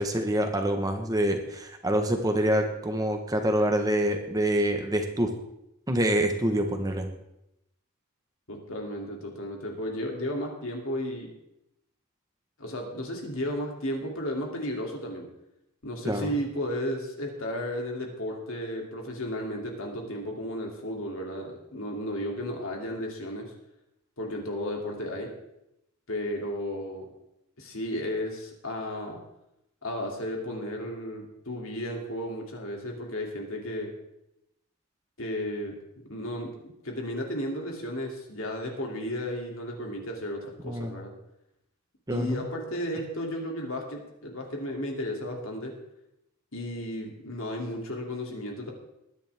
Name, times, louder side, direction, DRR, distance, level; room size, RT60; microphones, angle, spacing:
voice 1, 0.0-5.3 5.9-7.1 16.1-16.3 40.6-40.9 42.1-42.4, right 1 dB, 15° right, 5 dB, 1.2 m, -26 dB
voice 2, 8.5-11.3 12.6-15.3 15.8-23.5 24.2-25.3 26.1-27.1 27.6-29.2 29.8-33.9 35.2-35.7 36.1-36.5 36.8-41.1 42.1-45.7 46.5-48.7, left 1 dB, 65° left, 1 dB, 2.9 m, -34 dB
20.5 x 10.0 x 3.6 m, 0.85 s
head